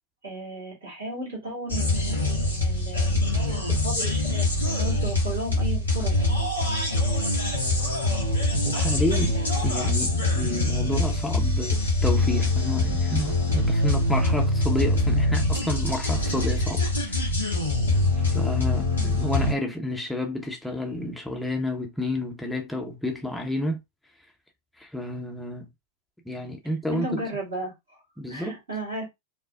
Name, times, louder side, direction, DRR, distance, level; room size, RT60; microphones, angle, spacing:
voice 1, 0.2-6.2 18.9-19.2 26.9-28.0 28.3-29.0, right 1 dB, 70° right, 2.1 m, -35 dB
sound 1, 1.7-19.5, left 2 dB, 80° left, 1.5 m, -24 dB
voice 2, 8.5-17.4 18.2-23.8 24.8-25.7 26.2-27.3 28.2-28.6, left 1 dB, ahead, 0.7 m, -30 dB
5.1 x 2.0 x 2.4 m
figure-of-eight pair, 90°, 0 cm